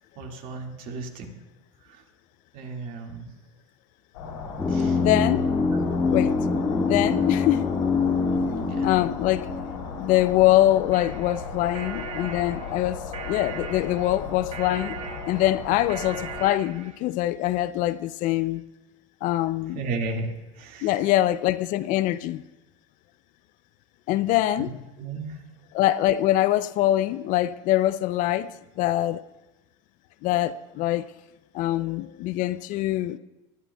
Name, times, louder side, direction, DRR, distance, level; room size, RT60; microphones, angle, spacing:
voice 1, 0.2-1.3 1.8-2.0 2.5-3.3 4.7-5.0 5.7-5.8 8.3-8.9 19.7-20.3 20.5-21.1 24.6-24.7 25.0-25.4, right 3 dB, 55° right, 2.0 m, -34 dB
sound 1, 4.1-16.4, left 4 dB, 85° left, 4.4 m, -36 dB
sound 2, 4.6-10.6 10.9-11.0, left 4 dB, 15° left, 1.1 m, -25 dB
voice 2, 4.9-5.4 5.9-6.5 6.9-7.6 8.8-9.5 10.0-15.0 15.2-18.6 19.2-19.8 20.8-22.4 24.1-24.7 25.7-29.2 30.2-31.1 31.5-33.2, left 14 dB, 50° left, 0.5 m, -24 dB
sound 3, 10.9-17.0, right 7 dB, 40° right, 1.2 m, -40 dB
20.5 x 10.5 x 2.3 m
hypercardioid pair, 100°, 17 cm